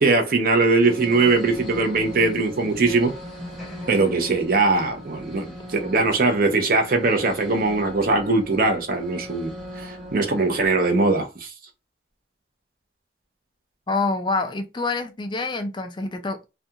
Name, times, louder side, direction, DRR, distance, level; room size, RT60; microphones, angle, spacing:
voice 1, 0.0-3.1 3.9-11.5, right 3 dB, 50° right, 0.6 m, -21 dB
sound 1, 0.7-10.7, left 1 dB, ahead, 0.9 m, -39 dB
voice 2, 13.9-16.5, left 3 dB, 25° left, 0.4 m, -26 dB
2.4 x 2.3 x 2.7 m
head